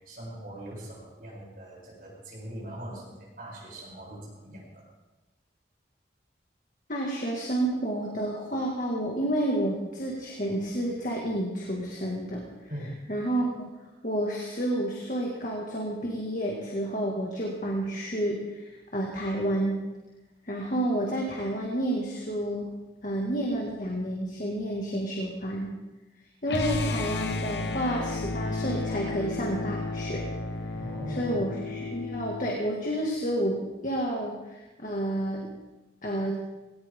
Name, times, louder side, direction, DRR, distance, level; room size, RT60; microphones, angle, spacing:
voice 1, 0.0-4.8 12.7-12.9 30.7-31.5, equal, 50° right, -5 dB, 7.7 m, -41 dB
voice 2, 6.9-12.4 13.1-13.7 14.0-19.8 20.5-22.7 23.0-25.7 26.4-30.3 31.1-35.5 36.0-36.4, right 1 dB, 45° left, -2 dB, 2.1 m, -30 dB
sound 1, 26.5-32.5, left 3 dB, 75° left, 1.1 m, -32 dB
18.5 x 18.0 x 3.8 m, 1.1 s
head